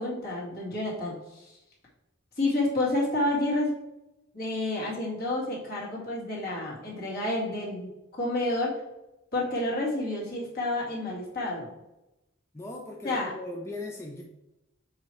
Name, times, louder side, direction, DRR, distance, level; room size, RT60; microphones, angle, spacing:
voice 1, 0.0-1.5 2.4-3.7 4.3-8.7 9.3-11.7 13.0-13.3, left 2 dB, 50° left, -4 dB, 2.2 m, -29 dB
voice 2, 12.5-14.2, left 2 dB, 15° left, 0 dB, 0.5 m, -38 dB
7.3 x 3.1 x 4.5 m, 0.94 s
head